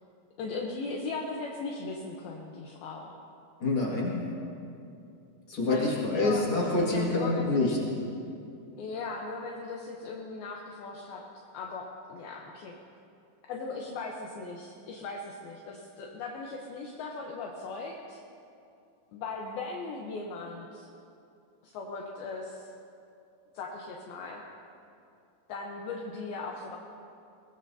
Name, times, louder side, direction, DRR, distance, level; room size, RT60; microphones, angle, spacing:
voice 1, 0.4-3.1 5.7-6.5 6.8-7.6 8.8-11.2 11.5-11.8 12.1-12.8 13.5-18.2 19.1-20.9 21.6-22.7 23.5-24.4 25.5-26.8, left 3 dB, 80° left, -1 dB, 2.2 m, -38 dB
voice 2, 3.6-4.3 5.5-7.8, left 2 dB, 45° left, -4 dB, 1.6 m, -27 dB
22.0 x 19.0 x 2.8 m, 2.6 s
omnidirectional pair, 5.6 m